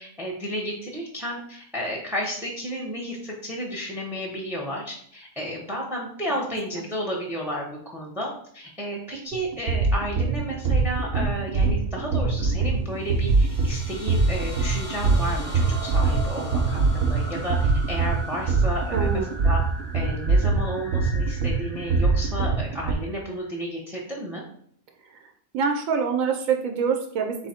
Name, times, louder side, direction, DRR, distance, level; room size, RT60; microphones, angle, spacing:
voice 1, 0.0-19.6 19.9-24.4, equal, ahead, -1 dB, 0.5 m, -32 dB
sound 1, 9.3-22.9, right 4 dB, 60° right, 0.7 m, -23 dB
sound 2, 13.0-23.6, equal, 20° right, 1.0 m, -39 dB
voice 2, 18.9-19.3 25.1-25.2 25.5-27.4, right 6 dB, 80° right, 4 dB, 1.0 m, -25 dB
3.9 x 3.3 x 4.1 m, 0.63 s
omnidirectional pair, 1.4 m